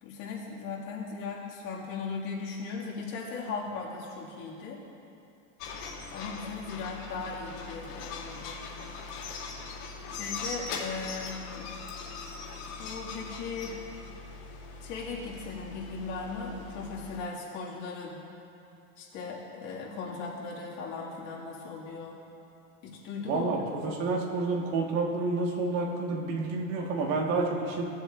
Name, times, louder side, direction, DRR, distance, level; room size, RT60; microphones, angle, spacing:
voice 1, 0.0-4.8 6.1-8.9 10.1-11.7 12.8-13.8 14.8-18.2 19.0-22.2 22.8-23.7, left 4 dB, 50° left, -5 dB, 2.0 m, -38 dB
sound 1, 5.6-17.2, left 4 dB, 70° left, 2.2 m, -41 dB
voice 2, 23.2-27.8, right 3 dB, 75° right, -1 dB, 1.5 m, -29 dB
17.0 x 7.7 x 2.4 m, 2.8 s
supercardioid pair, 160°, 40 cm